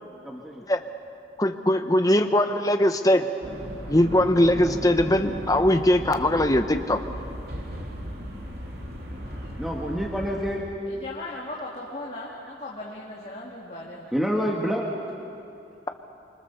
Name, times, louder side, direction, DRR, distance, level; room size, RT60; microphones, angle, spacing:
voice 1, 0.2-0.6 9.6-10.6 14.0-14.9, equal, ahead, -2 dB, 1.7 m, -27 dB
voice 2, 1.4-3.3 3.9-7.0, left 1 dB, 20° left, 7 dB, 1.0 m, -21 dB
sound 1, 3.4-10.6, equal, 55° right, 3.5 m, -36 dB
voice 3, 11.0-14.1, left 2 dB, 35° left, -4 dB, 2.2 m, -37 dB
26.0 x 24.5 x 7.0 m, 2.6 s
head